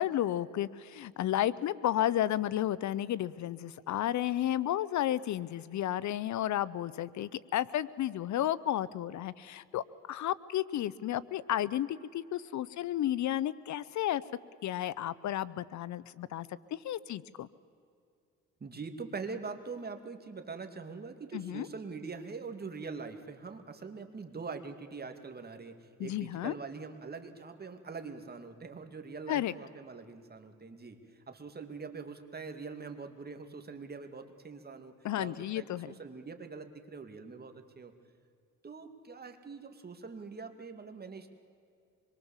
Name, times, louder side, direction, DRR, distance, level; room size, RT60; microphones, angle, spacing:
voice 1, 0.0-14.2 14.6-17.5 21.3-21.7 26.0-26.5 29.3-29.5 35.0-36.0, left 12 dB, 70° left, 19 dB, 0.8 m, -32 dB
voice 2, 18.6-37.9 38.6-41.3, right 4 dB, 30° right, 7 dB, 2.5 m, -43 dB
25.5 x 23.0 x 7.3 m, 2.4 s
cardioid pair, 90°, 30 cm